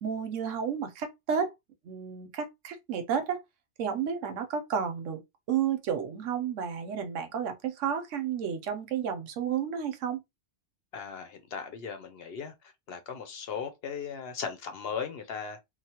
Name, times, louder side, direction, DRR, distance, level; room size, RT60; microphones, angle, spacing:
voice 1, 0.0-1.5 1.8-3.4 3.8-5.2 5.5-10.2, right 7 dB, 85° right, 1.0 m, -31 dB
voice 2, 10.9-12.5 12.9-15.6, left 6 dB, 60° left, 0.7 m, -37 dB
3.0 x 2.0 x 2.8 m
omnidirectional pair, 1.3 m